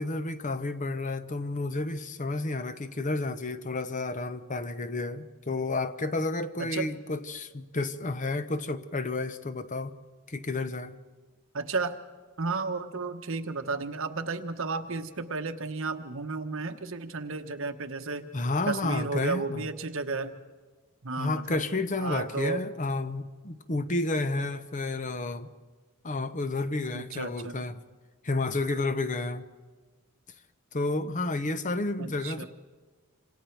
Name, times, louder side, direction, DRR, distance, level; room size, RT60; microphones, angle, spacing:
voice 1, 0.0-9.9 10.3-11.0 18.3-19.6 21.2-25.5 26.0-27.8 28.2-29.4 30.7-32.4, left 2 dB, 35° left, 12 dB, 0.8 m, -31 dB
voice 2, 11.5-11.9 12.4-18.3 18.7-20.4 21.0-21.6 22.0-22.6 26.9-27.6 32.0-32.5, right 3 dB, 60° right, 8 dB, 1.2 m, -33 dB
27.0 x 26.5 x 4.6 m, 1.4 s
head